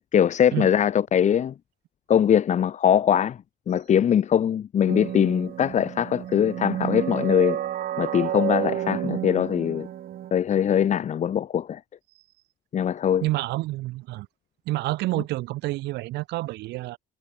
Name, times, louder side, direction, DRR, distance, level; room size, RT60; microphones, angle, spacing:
voice 1, 0.0-1.5 2.1-3.4 3.7-7.6 8.0-9.9 10.3-11.8 12.7-13.2, left 9 dB, 45° left, 1.2 m, -22 dB
sound 1, 4.9-10.3, right 11 dB, 60° right, 4.0 m, -30 dB
voice 2, 13.2-14.3 14.7-17.0, right 18 dB, 85° right, 4.3 m, -28 dB
cardioid pair, 110°, 17 cm